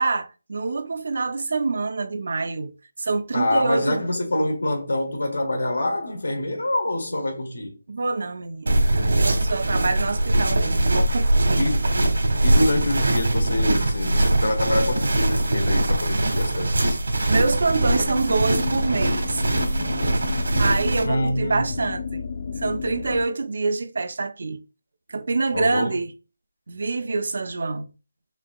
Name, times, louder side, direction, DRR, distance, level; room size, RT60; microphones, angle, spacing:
voice 1, 0.0-2.7 3.0-4.0 7.9-11.7 17.3-19.4 20.6-22.2 22.6-24.6 25.1-26.1 26.7-27.9, right 3 dB, 55° right, 0.5 m, -26 dB
voice 2, 3.3-7.8 11.6-12.0 12.4-17.0 21.0-21.8 25.5-26.0, left 1 dB, 75° left, 1.5 m, -26 dB
sound 1, 8.7-21.0, right 1 dB, 80° right, 1.3 m, -22 dB
sound 2, 17.8-23.2, left 5 dB, 40° left, 0.4 m, -33 dB
5.4 x 2.7 x 2.4 m
figure-of-eight pair, 170°, 0 cm